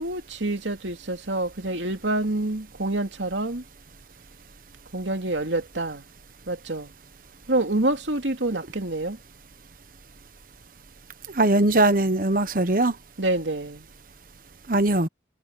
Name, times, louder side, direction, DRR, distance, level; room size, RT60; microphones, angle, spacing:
voice 1, 0.0-3.6 4.9-6.1 6.5-6.9 7.5-9.2 13.2-13.9, right 2 dB, 90° right, 2.9 m, -27 dB
voice 2, 11.3-12.9 14.7-15.1, right 2 dB, 50° right, 1.2 m, -20 dB
head